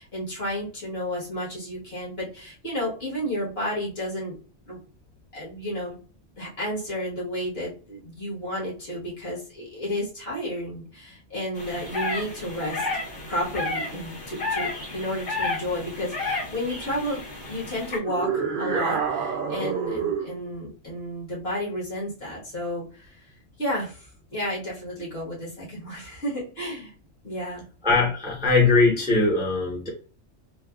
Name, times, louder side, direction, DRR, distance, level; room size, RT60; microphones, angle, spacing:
voice 1, 0.0-4.4 4.7-4.8 5.3-6.0 6.4-12.9 13.3-23.2 23.6-26.9 27.2-27.6, equal, 55° left, -5 dB, 1.6 m, -32 dB
sound 1, 11.5-18.0, left 3 dB, 75° left, 1.8 m, -32 dB
sound 2, 18.1-20.4, right 6 dB, 55° right, 0.6 m, -27 dB
voice 2, 27.8-29.9, left 3 dB, 5° right, -3 dB, 0.7 m, -20 dB
3.3 x 2.2 x 2.3 m, 0.37 s
omnidirectional pair, 1.2 m